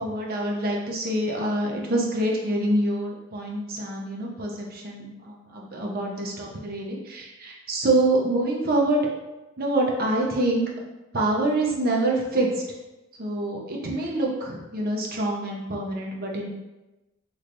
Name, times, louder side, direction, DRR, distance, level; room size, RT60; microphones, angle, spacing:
voice 1, 0.0-9.1 9.6-10.7 11.1-12.6 13.2-16.5, right 1 dB, 45° right, -1 dB, 0.6 m, -26 dB
3.2 x 3.1 x 2.6 m, 1.0 s
head